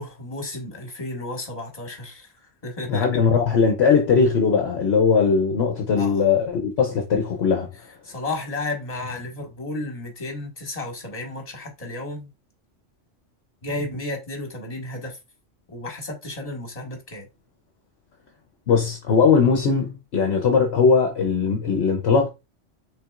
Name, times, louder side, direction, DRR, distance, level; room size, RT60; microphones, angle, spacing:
voice 1, 0.0-2.3 2.6-3.1 6.0-6.2 8.0-12.3 13.6-15.2 15.7-17.2, left 2 dB, 30° left, 1.6 m, -32 dB
voice 2, 2.9-7.7 18.7-22.3, left 5 dB, 65° left, 1.0 m, -19 dB
5.8 x 3.5 x 2.4 m
omnidirectional pair, 1.2 m